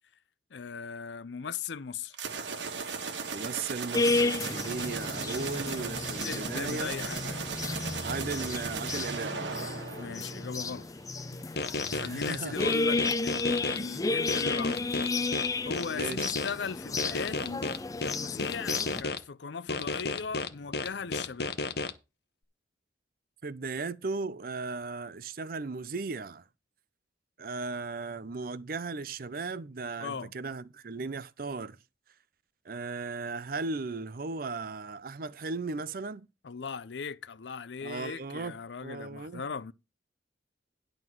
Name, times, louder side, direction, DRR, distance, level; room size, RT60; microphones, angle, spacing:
voice 1, 0.5-2.2 6.2-7.4 9.9-10.9 11.9-14.8 15.6-17.7 18.0-21.5 30.0-30.3 36.4-39.7, left 6 dB, 75° left, 0.6 m, -38 dB
sound 1, 2.1-10.8, right 5 dB, 90° right, 1.5 m, -37 dB
voice 2, 3.3-6.9 8.0-9.3 11.8-12.7 15.9-16.3 23.4-26.4 27.4-31.8 32.6-36.3 37.8-38.5 38.8-39.4, right 4 dB, 55° right, 0.5 m, -36 dB
sound 2, 3.9-19.0, left 3 dB, 20° left, 0.5 m, -32 dB
sound 3, 11.6-13.8 14.3-16.5 17.0-19.2 19.7-21.9, left 3 dB, 60° left, 0.9 m, -32 dB
11.0 x 3.9 x 7.6 m
head